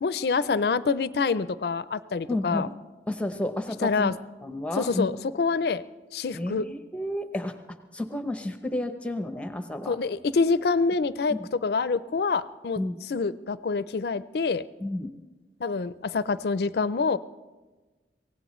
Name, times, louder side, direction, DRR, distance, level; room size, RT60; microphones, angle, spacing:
voice 1, 0.0-2.7 3.8-4.1 4.8-5.1 5.4-5.8 6.1-6.6 9.9-11.4 11.6-12.8 13.1-14.6 15.6-17.2, left 4 dB, 60° left, 15 dB, 0.4 m, -26 dB
voice 2, 2.3-2.7 3.1-4.1 4.4-5.1 6.3-10.0 11.3-11.5 12.8-13.0 14.8-15.1, left 1 dB, 5° left, 7 dB, 0.7 m, -31 dB
23.5 x 17.5 x 3.1 m, 1.2 s
head